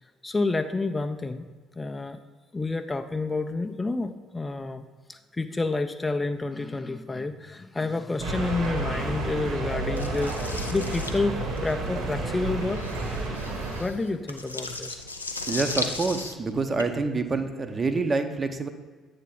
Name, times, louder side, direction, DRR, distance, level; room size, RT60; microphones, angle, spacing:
voice 1, 0.0-1.5 1.8-2.2 2.5-12.8 13.8-15.0, left 3 dB, 20° left, 7 dB, 0.4 m, -29 dB
sound 1, 8.2-13.8, right 2 dB, 65° right, 1.6 m, -31 dB
sound 2, 10.0-16.8, left 3 dB, 85° left, 0.4 m, -36 dB
voice 2, 15.5-18.7, right 3 dB, 30° right, 8 dB, 0.7 m, -27 dB
8.1 x 3.5 x 5.7 m, 1.5 s
figure-of-eight pair, 50°, 0 cm